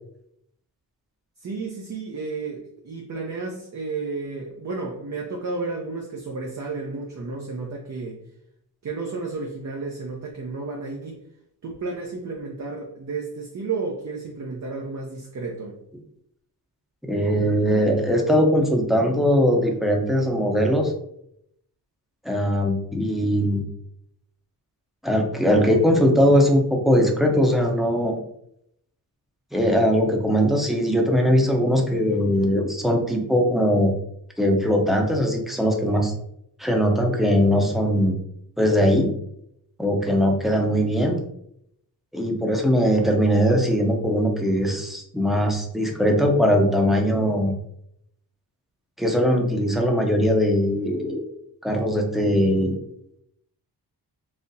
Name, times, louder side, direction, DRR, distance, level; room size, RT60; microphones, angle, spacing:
voice 1, 1.4-8.2 8.8-11.2 11.6-15.8, right 4 dB, 45° right, 0 dB, 0.7 m, -32 dB
voice 2, 17.1-20.9 22.2-23.6 25.0-28.2 29.5-33.9 34.4-36.1 36.6-38.2 38.6-39.1 39.8-41.2 42.1-47.5 49.0-51.2 51.6-52.8, equal, ahead, 1 dB, 0.7 m, -20 dB
4.1 x 2.8 x 2.6 m, 0.73 s
cardioid pair, 95°, 41 cm